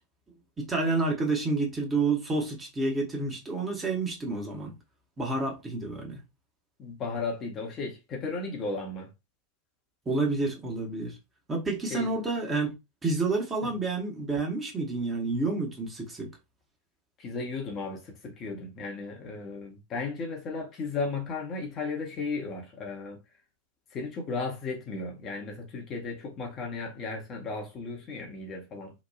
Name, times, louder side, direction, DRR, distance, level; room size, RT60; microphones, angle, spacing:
voice 1, 0.6-4.7 5.2-6.2 10.1-11.2 11.5-12.8 13.0-16.3, right 3 dB, 15° right, 1.0 m, -29 dB
voice 2, 6.8-9.1 11.9-12.1 13.6-13.7 17.2-23.2 23.9-28.9, left 3 dB, 30° left, 0.8 m, -35 dB
3.0 x 2.2 x 2.2 m
figure-of-eight pair, 90°, 0 cm